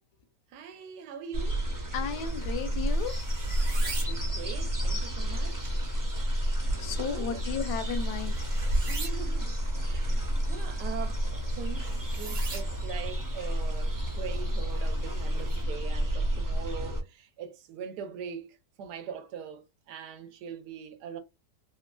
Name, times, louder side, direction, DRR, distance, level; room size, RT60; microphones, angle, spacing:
voice 1, 0.5-1.6 3.8-5.8 6.5-7.4 8.9-9.5 9.8-11.2 11.5-21.2, right 7 dB, 75° right, 1.1 m, -42 dB
sound 1, 1.3-17.0, equal, 25° right, 0.4 m, -30 dB
voice 2, 1.9-3.2 6.8-8.4, left 7 dB, 80° left, 1.2 m, -34 dB
sound 2, 2.2-15.6, right 3 dB, 45° right, 1.0 m, -46 dB
3.7 x 2.1 x 2.2 m
omnidirectional pair, 1.8 m